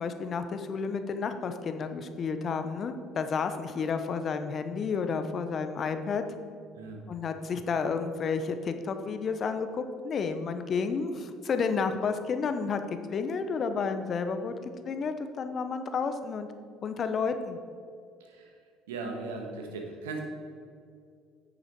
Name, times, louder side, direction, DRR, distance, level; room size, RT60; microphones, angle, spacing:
voice 1, 0.0-6.2 7.1-12.8 13.1-16.5 16.8-17.6, left 5 dB, 45° left, 8 dB, 0.8 m, -31 dB
voice 2, 18.2-18.5 18.9-20.2, right 3 dB, 85° right, 2 dB, 1.3 m, -38 dB
9.0 x 6.6 x 4.6 m, 2.3 s
hypercardioid pair, 65°, 0 cm